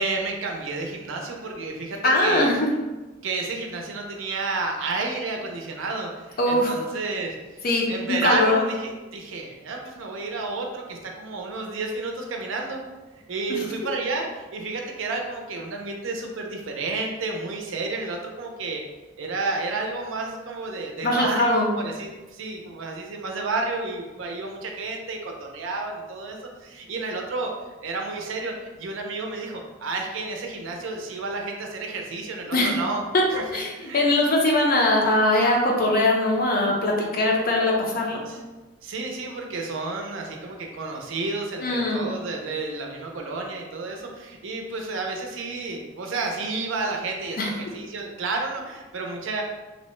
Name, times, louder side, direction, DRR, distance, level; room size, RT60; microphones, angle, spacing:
voice 1, 0.0-2.5 3.2-12.8 13.1-18.8 19.2-33.0 33.3-33.4 33.7-34.0 38.0-38.4 38.8-49.4, right 3 dB, 75° right, 1 dB, 0.5 m, -31 dB
voice 2, 2.0-2.7 6.4-6.7 7.6-8.6 21.0-21.7 32.5-32.7 33.1-33.2 33.5-38.2 41.6-42.0 47.4-47.5, left 2 dB, 50° left, 0 dB, 0.5 m, -21 dB
2.7 x 2.1 x 3.0 m, 1.2 s
head